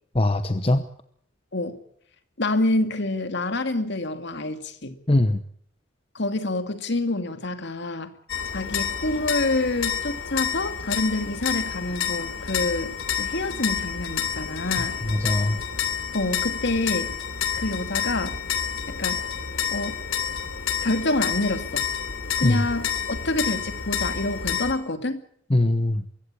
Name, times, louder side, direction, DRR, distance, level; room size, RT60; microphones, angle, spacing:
voice 1, 0.1-0.8 5.1-5.4 14.8-15.6 22.4-22.6 25.5-26.0, left 1 dB, 30° left, 11 dB, 0.9 m, -22 dB
voice 2, 2.4-4.9 6.1-8.1 8.5-12.9 13.2-15.0 16.1-17.1 17.5-18.4 18.9-19.2 19.7-20.0 20.8-21.8 22.4-25.2, left 2 dB, 60° left, 9 dB, 2.3 m, -27 dB
sound 1, 8.3-24.7, left 7 dB, 90° left, 3.3 m, -29 dB
23.0 x 16.5 x 8.4 m, 0.64 s
head